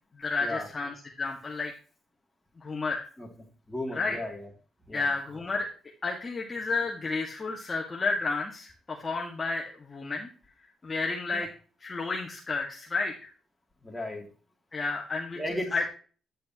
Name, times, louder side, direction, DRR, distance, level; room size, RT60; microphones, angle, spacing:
voice 1, 0.1-1.7 2.6-3.0 3.9-4.2 4.9-5.7 6.0-10.3 10.8-11.5 11.8-13.3 14.7-15.4 15.7-15.8, left 3 dB, 30° left, -1 dB, 1.6 m, -31 dB
voice 2, 3.7-4.5 4.9-5.1 11.3-11.4 13.8-14.3 15.4-15.7, left 1 dB, 10° left, 1 dB, 2.6 m, -35 dB
10.0 x 7.5 x 2.9 m, 0.38 s
cardioid pair, 90°, 0 cm